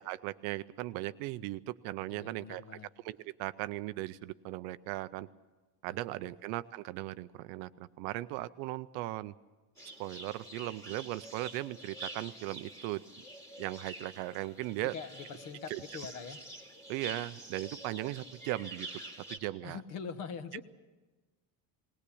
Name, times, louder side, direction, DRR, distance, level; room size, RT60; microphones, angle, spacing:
voice 1, 0.0-2.6 3.0-5.3 5.8-9.3 10.0-13.0 13.6-14.9 15.7-15.8 16.9-19.0 19.3-19.8 20.5-20.6, right 17 dB, 55° right, 14 dB, 0.6 m, -38 dB
voice 2, 2.1-2.9 6.2-6.3 14.9-16.4 19.6-20.6, left 6 dB, 40° left, 10 dB, 1.3 m, -43 dB
sound 1, 9.8-19.4, right 2 dB, 5° left, 2.4 m, -47 dB
20.0 x 18.5 x 8.5 m, 1.2 s
cardioid pair, 175°, 50 cm